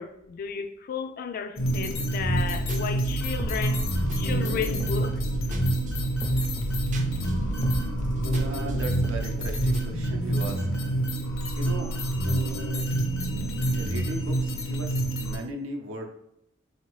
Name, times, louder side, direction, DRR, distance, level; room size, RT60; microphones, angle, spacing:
voice 1, 0.0-3.9 4.2-5.2, left 6 dB, 45° left, 0.3 m, -33 dB
sound 1, 1.6-15.4, right 1 dB, 85° left, 0.9 m, -27 dB
sound 2, 2.2-9.9, equal, 35° right, 0.4 m, -32 dB
voice 2, 8.3-10.7 11.5-11.9 13.8-16.1, right 2 dB, 80° right, 0.7 m, -37 dB
4.0 x 2.8 x 3.0 m
head